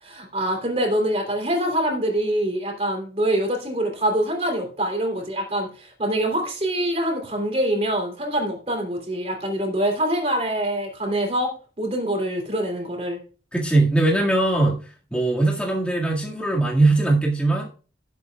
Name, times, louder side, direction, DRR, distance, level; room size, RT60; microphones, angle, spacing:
voice 1, 0.0-11.5 11.8-13.2, right 1 dB, 35° right, 2 dB, 3.3 m, -25 dB
voice 2, 13.5-17.7, right 2 dB, 5° left, -3 dB, 2.0 m, -20 dB
18.0 x 8.2 x 2.4 m, 0.37 s
head